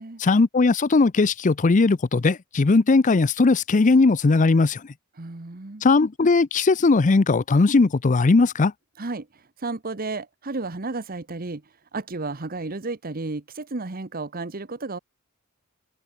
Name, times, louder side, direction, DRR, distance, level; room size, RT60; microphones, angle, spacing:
voice 1, 0.2-4.8 5.8-8.7, left 3 dB, 35° left, 0.5 m, -18 dB
voice 2, 5.2-5.8 9.0-15.0, right 3 dB, 45° right, 1.1 m, -33 dB
head